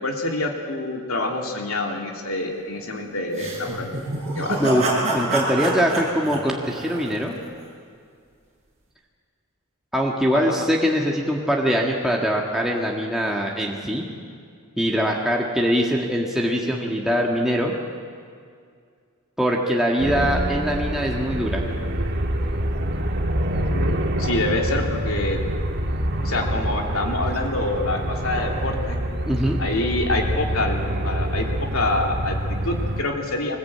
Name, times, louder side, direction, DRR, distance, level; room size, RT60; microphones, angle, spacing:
voice 1, 0.0-3.9 4.3-4.8 10.3-10.6 23.5-25.4 26.2-29.0 29.6-33.6, left 2 dB, 75° left, 1 dB, 3.0 m, -26 dB
sound 1, 3.3-7.5, right 2 dB, 30° right, 6.9 m, -27 dB
voice 2, 4.6-7.4 9.9-14.1 14.8-17.7 19.4-21.6 29.3-29.6, equal, ahead, -2 dB, 1.8 m, -22 dB
sound 2, 20.0-33.0, right 1 dB, 50° right, 1.8 m, -26 dB
24.0 x 20.5 x 8.7 m, 2.2 s
head